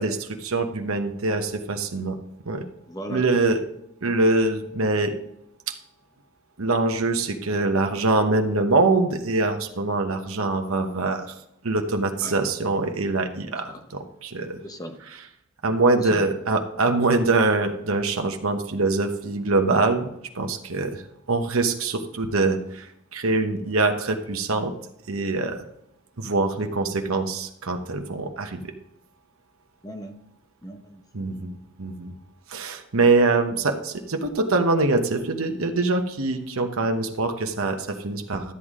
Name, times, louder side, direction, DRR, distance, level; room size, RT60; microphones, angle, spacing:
voice 1, 0.0-2.2 2.4-2.6 3.1-3.6 4.0-5.1 5.7-5.8 6.6-11.3 11.6-14.6 15.6-20.1 20.3-21.0 21.3-24.7 25.1-25.6 26.2-28.7 31.1-32.1 32.5-38.5, right 3 dB, 80° right, 5 dB, 1.1 m, -24 dB
voice 2, 2.9-3.3 12.2-12.4 13.6-13.8 14.6-15.0 15.9-16.2 29.8-30.2 30.6-31.0 31.2-31.5, equal, 20° left, 5 dB, 1.0 m, -37 dB
13.0 x 8.3 x 3.7 m, 0.80 s
head